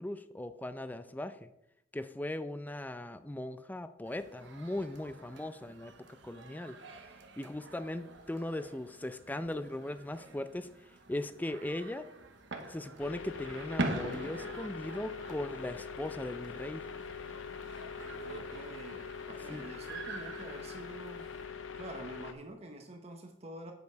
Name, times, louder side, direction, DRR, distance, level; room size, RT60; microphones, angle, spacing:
voice 1, 0.0-1.5 1.9-5.9 6.2-6.8 7.4-10.7 11.1-12.1 12.7-16.9 19.5-19.7, left 1 dB, 10° left, 11 dB, 0.4 m, -38 dB
sound 1, 4.0-21.5, right 2 dB, 65° right, 0.9 m, -45 dB
sound 2, 13.0-22.3, left 5 dB, 90° left, 0.7 m, -43 dB
voice 2, 18.2-23.7, right 2 dB, 35° right, 3 dB, 0.7 m, -48 dB
8.0 x 5.2 x 4.6 m, 0.83 s
head